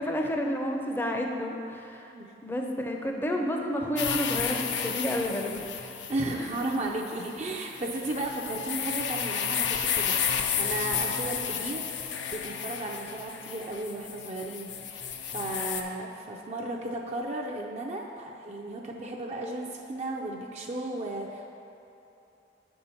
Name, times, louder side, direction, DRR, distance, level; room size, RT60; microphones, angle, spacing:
voice 1, 0.0-2.1 2.4-5.9 6.4-6.5, equal, 10° left, 1 dB, 0.5 m, -30 dB
sound 1, 4.0-15.8, left 7 dB, 80° left, 0.5 m, -32 dB
voice 2, 6.1-10.2 10.6-21.5, right 2 dB, 35° right, 0 dB, 0.5 m, -34 dB
8.6 x 5.5 x 4.4 m, 2.8 s
head